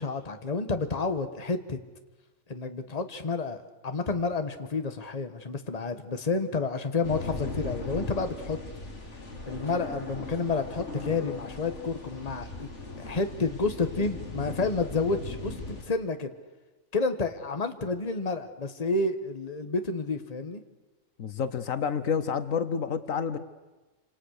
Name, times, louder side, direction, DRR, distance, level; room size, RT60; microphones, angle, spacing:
voice 1, 0.0-1.8 2.5-3.6 3.8-8.6 9.5-12.7 13.0-16.3 16.9-20.6, left 3 dB, 30° left, 8 dB, 1.5 m, -30 dB
sound 1, 7.0-15.8, left 2 dB, 55° left, 3.5 m, -38 dB
voice 2, 21.2-23.4, left 6 dB, 70° left, 12 dB, 1.4 m, -29 dB
28.0 x 26.5 x 6.6 m, 1.2 s
omnidirectional pair, 1.4 m